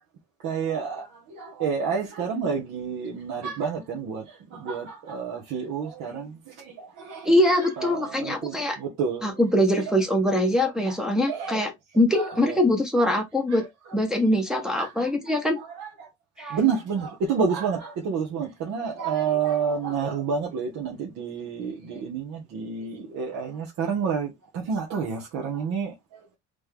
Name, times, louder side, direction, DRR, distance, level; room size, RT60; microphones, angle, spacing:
voice 1, 0.4-7.3 7.6-9.4 9.7-9.8 10.9-11.0 11.3-11.6 12.1-12.6 13.5-13.6 14.7-15.1 15.6-16.1 16.4-26.4, right 6 dB, 60° right, 1.3 m, -29 dB
voice 2, 7.2-8.8 9.2-13.6 13.9-15.6 16.4-16.5, left 1 dB, ahead, 0.9 m, -23 dB
3.9 x 3.3 x 3.4 m
cardioid pair, 175°, 31 cm